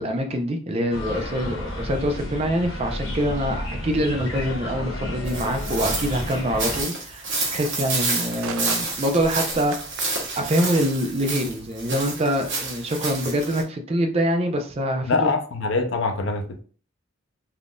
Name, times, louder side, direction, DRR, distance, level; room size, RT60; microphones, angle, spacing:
voice 1, 0.0-9.7 10.4-15.3, equal, 30° right, 0.4 m, -25 dB
sound 1, 0.8-11.1, right 5 dB, 85° right, 0.4 m, -43 dB
sound 2, 0.9-6.8, left 1 dB, 80° left, 1.0 m, -31 dB
sound 3, 5.3-13.6, right 3 dB, 60° right, 1.0 m, -29 dB
voice 2, 15.1-16.6, left 3 dB, 60° left, 0.5 m, -24 dB
3.5 x 2.5 x 2.2 m
head